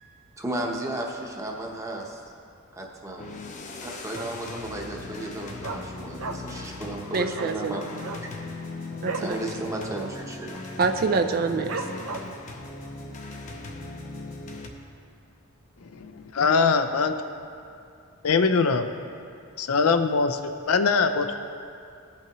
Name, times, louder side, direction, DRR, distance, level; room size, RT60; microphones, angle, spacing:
voice 1, 0.4-2.2 2.7-3.3 3.8-8.3 9.2-10.6, right 1 dB, 15° right, 0 dB, 0.9 m, -34 dB
sound 1, 3.2-14.7, left 2 dB, 35° left, 0.6 m, -39 dB
Dog, 4.1-4.6 4.9-5.0 5.2-6.7 6.9-7.0 7.3-7.6 7.9-9.4 9.7-9.9 10.1-10.6 11.0-11.1 11.7-12.5 13.0-13.1, right 4 dB, 75° right, 0.7 m, -35 dB
voice 2, 7.1-7.8 9.0-9.4 10.8-11.8, right 4 dB, 45° right, 7 dB, 0.4 m, -25 dB
voice 3, 15.9-17.1 18.2-18.9 19.6-21.3, left 4 dB, 75° left, 8 dB, 0.5 m, -22 dB
16.5 x 5.8 x 3.0 m, 2.4 s
head